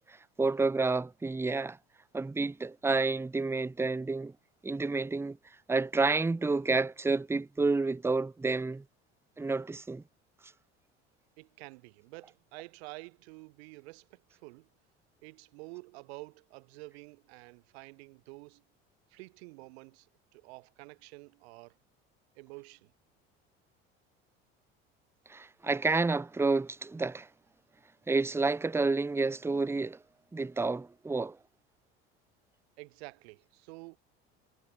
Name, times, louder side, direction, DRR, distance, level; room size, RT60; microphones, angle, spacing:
voice 1, 0.0-1.8 2.1-4.3 4.6-5.4 5.7-8.8 9.4-10.0 25.3-27.3 28.1-30.0 30.3-31.4, right 3 dB, 10° right, 0.7 m, -29 dB
voice 2, 11.4-14.7 15.2-18.6 19.1-21.8 22.4-22.9 32.8-34.0, right 26 dB, 75° right, 2.4 m, -49 dB
hypercardioid pair, 75°, 32 cm